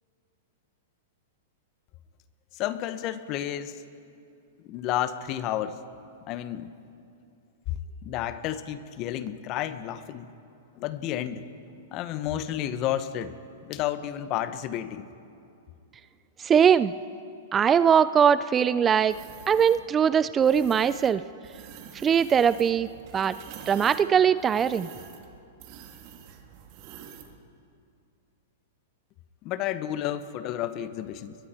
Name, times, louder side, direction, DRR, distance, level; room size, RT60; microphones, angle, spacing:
voice 1, 2.5-3.7 4.6-5.8 6.3-6.7 8.0-10.3 10.8-13.3 13.7-15.0 29.4-31.4, left 11 dB, 40° left, 12 dB, 1.2 m, -31 dB
voice 2, 16.4-16.9 17.5-19.1 19.5-21.2 22.0-22.9 23.1-23.4 23.7-24.9, right 7 dB, 20° right, 15 dB, 0.5 m, -21 dB
sound 1, 19.1-19.8 20.4-21.1 21.4-27.4, right 8 dB, 50° right, 2.3 m, -46 dB
29.5 x 22.0 x 4.5 m, 2.5 s
hypercardioid pair, 120°, 0 cm